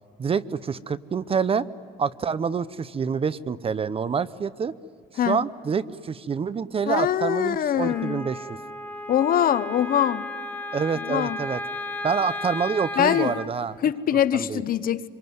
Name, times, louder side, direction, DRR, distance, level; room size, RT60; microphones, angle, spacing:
voice 1, 0.2-1.7 2.0-4.7 5.2-8.6 10.7-11.6 12.0-13.8 14.3-14.6, right 6 dB, 30° right, 17 dB, 0.7 m, -27 dB
voice 2, 6.9-8.2 9.1-10.3 11.1-11.4 13.0-13.3 13.8-15.1, left 10 dB, 55° left, 14 dB, 0.9 m, -23 dB
Wind instrument woodwind instrument, 7.8-13.5, left 1 dB, 10° left, 1.7 m, -34 dB
26.0 x 23.5 x 9.5 m, 2.3 s
cardioid pair, 115°, 18 cm